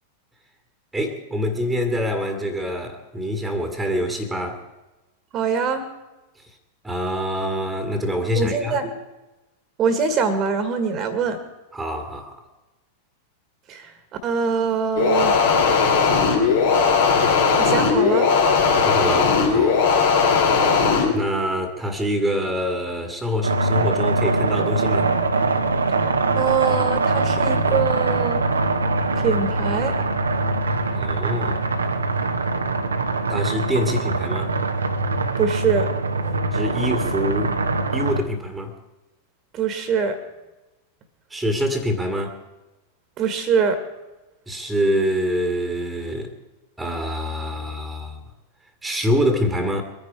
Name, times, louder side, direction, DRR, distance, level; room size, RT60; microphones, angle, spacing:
voice 1, 0.9-4.6 6.8-8.8 11.7-12.4 18.8-19.8 21.1-25.1 30.9-31.6 33.3-34.6 36.5-37.5 37.9-38.7 41.3-42.4 44.5-46.3 46.8-48.2 48.8-49.8, equal, 5° right, 6 dB, 2.0 m, -25 dB
voice 2, 5.3-5.9 8.4-8.9 9.8-11.4 13.7-13.9 14.2-15.4 17.6-18.3 26.0-28.4 29.2-30.0 35.4-35.9 36.2-36.3 39.5-40.2 43.2-43.8, right 6 dB, 30° right, 9 dB, 1.9 m, -23 dB
sound 1, 15.0-21.1, left 5 dB, 65° left, 4.6 m, -18 dB
sound 2, 23.4-38.2, right 3 dB, 75° right, 1.2 m, -22 dB
24.0 x 10.5 x 4.8 m, 1.1 s
figure-of-eight pair, 90°, 0 cm